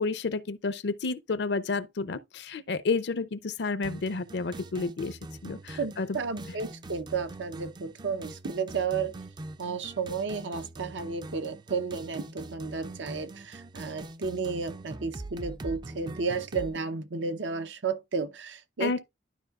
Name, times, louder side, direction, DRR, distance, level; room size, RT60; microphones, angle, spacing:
voice 1, 0.0-5.2 5.4-6.2 18.8-19.0, left 4 dB, 65° left, 0.5 m, -30 dB
sound 1, 3.8-16.8, right 2 dB, 25° right, 0.3 m, -43 dB
voice 2, 5.7-9.2 9.6-19.0, right 5 dB, 85° right, 0.8 m, -32 dB
12.0 x 4.8 x 2.4 m
head